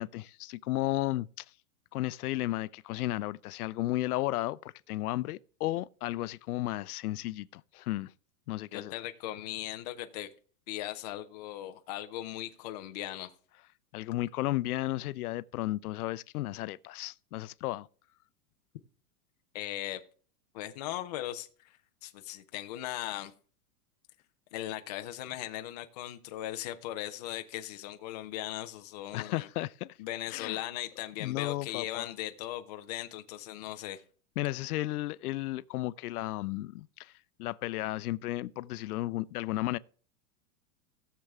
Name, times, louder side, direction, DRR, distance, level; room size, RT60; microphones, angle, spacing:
voice 1, 0.0-1.4 1.9-8.1 8.5-8.9 13.9-17.9 29.1-30.0 30.3-30.6 31.2-32.1 34.4-37.1 37.4-39.8, left 16 dB, 80° left, 0.6 m, -34 dB
voice 2, 8.7-10.3 10.7-13.3 19.5-20.0 20.5-23.3 24.5-29.5 30.0-34.0, left 14 dB, 30° left, 0.5 m, -38 dB
16.5 x 6.8 x 3.5 m
supercardioid pair, 170°, 44 cm